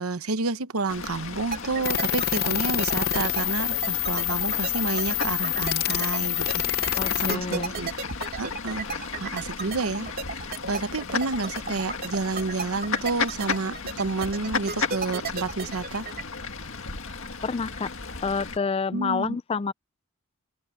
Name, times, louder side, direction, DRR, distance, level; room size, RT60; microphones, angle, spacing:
voice 1, 0.0-7.9 8.3-16.1 18.9-19.4, right 3 dB, 75° right, 0.9 m, -30 dB
Fowl / Bird, 0.9-18.6, left 4 dB, 60° left, 2.0 m, -35 dB
sound 1, 1.5-16.2, right 4 dB, 45° right, 2.5 m, -34 dB
sound 2, 1.8-7.4, left 11 dB, 45° left, 0.8 m, -27 dB
voice 2, 7.0-7.7 17.4-17.9 18.2-19.7, left 5 dB, 25° left, 0.4 m, -28 dB
open air
head